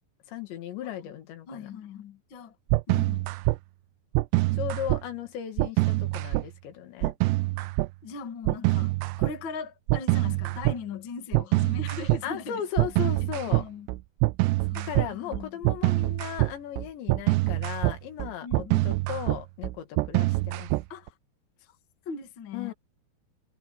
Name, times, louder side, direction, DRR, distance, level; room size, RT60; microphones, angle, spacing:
voice 1, 0.3-1.7 4.5-7.1 12.2-13.7 14.8-20.7 22.5-22.7, left 10 dB, 90° left, 4.6 m, -36 dB
voice 2, 1.5-2.6 2.9-3.3 7.6-7.7 8.0-12.6 13.2-13.9 14.6-15.5 18.4-18.9 20.9-21.1 22.1-22.7, left 5 dB, 40° left, 1.9 m, -39 dB
sound 1, 2.7-3.6 4.1-5.0 5.6-6.4 7.0-7.9 8.5-9.3 9.9-10.8 11.3-12.2 12.8-21.1, right 22 dB, 85° right, 2.7 m, -25 dB
omnidirectional pair, 5.0 m